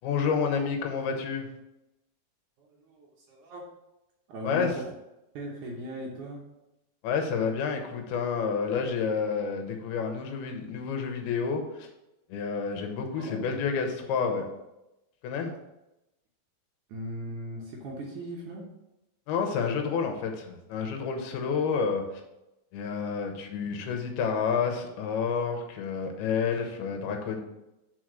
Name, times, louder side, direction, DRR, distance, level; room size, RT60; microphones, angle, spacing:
voice 1, 0.0-1.5 4.4-4.8 7.0-11.9 12.3-14.5 15.2-15.5 19.3-22.2 22.7-27.4, left 6 dB, 85° left, 4 dB, 2.9 m, -29 dB
voice 2, 2.7-3.7 4.3-4.9 5.4-6.4 13.2-13.6 16.9-18.6, equal, 70° right, -2 dB, 2.0 m, -38 dB
6.2 x 4.4 x 6.2 m, 0.93 s
omnidirectional pair, 4.5 m